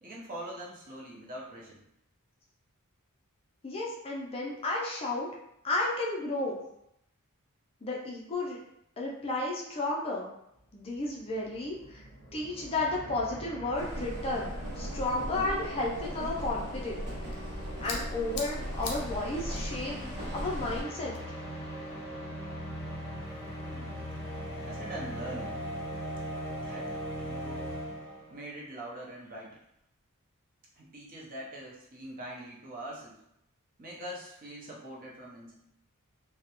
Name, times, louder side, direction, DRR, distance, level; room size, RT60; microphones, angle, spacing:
voice 1, 0.0-1.8 23.6-24.1 24.6-25.6 26.6-27.7 28.3-29.6 30.8-33.2 33.8-35.5, right 1 dB, 40° right, -3 dB, 0.6 m, -43 dB
voice 2, 3.6-5.3 5.6-6.6 7.8-8.6 9.0-10.3 10.7-12.0 12.3-17.4 17.8-21.2, left 2 dB, 25° left, -3 dB, 0.4 m, -33 dB
sound 1, 10.7-10.8 11.0-28.4, equal, 5° left, 0.7 m, -40 dB
sound 2, 13.7-20.8, equal, 90° right, 0.7 m, -39 dB
sound 3, 17.0-22.0, left 4 dB, 80° left, 0.5 m, -46 dB
2.2 x 2.0 x 2.8 m, 0.77 s
head